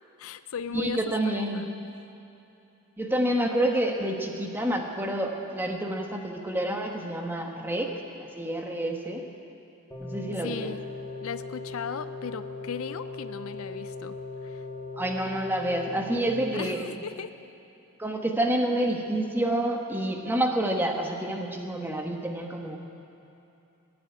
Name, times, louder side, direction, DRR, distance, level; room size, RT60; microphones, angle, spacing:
voice 1, 0.2-1.7 10.4-10.8 11.2-14.7 16.5-17.3, left 6 dB, 70° left, 12 dB, 0.5 m, -37 dB
voice 2, 0.7-1.7 3.0-7.9 8.2-9.2 10.0-10.7 15.0-16.8 18.0-22.8, right 1 dB, 10° right, 2 dB, 1.1 m, -28 dB
sound 1, 9.9-16.2, left 3 dB, 10° left, 2.4 m, -38 dB
19.0 x 7.8 x 9.5 m, 2.8 s
head